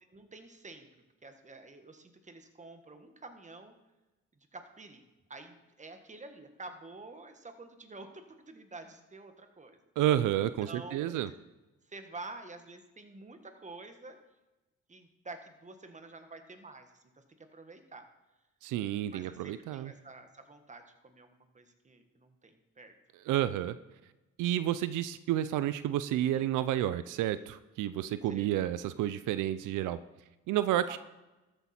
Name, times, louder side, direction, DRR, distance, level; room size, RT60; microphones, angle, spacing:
voice 1, 0.1-0.9 1.2-3.7 4.3-5.0 5.3-9.8 10.6-11.3 11.8-14.2 14.9-18.1 19.1-22.9 26.3-26.5 28.2-28.5 30.8-31.0, right 3 dB, 25° right, 7 dB, 1.5 m, -49 dB
voice 2, 10.0-11.3 18.6-19.9 23.3-23.8 24.4-30.0 30.5-31.0, right 12 dB, 85° right, 13 dB, 0.5 m, -30 dB
13.5 x 8.1 x 4.4 m, 1.1 s
cardioid pair, 90°, 30 cm